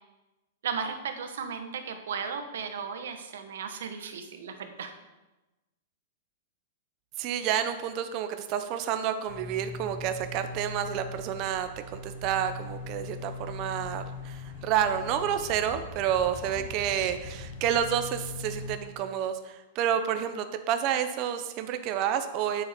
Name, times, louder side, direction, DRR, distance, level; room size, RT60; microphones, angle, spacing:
voice 1, 0.6-5.0 16.5-16.6, right 6 dB, 80° right, 7 dB, 1.4 m, -35 dB
voice 2, 7.2-22.6, right 9 dB, 30° right, 9 dB, 0.7 m, -29 dB
sound 1, 9.3-18.8, left 3 dB, 35° left, 3.6 m, -41 dB
9.1 x 7.3 x 5.2 m, 1.1 s
supercardioid pair, 170°, 0 cm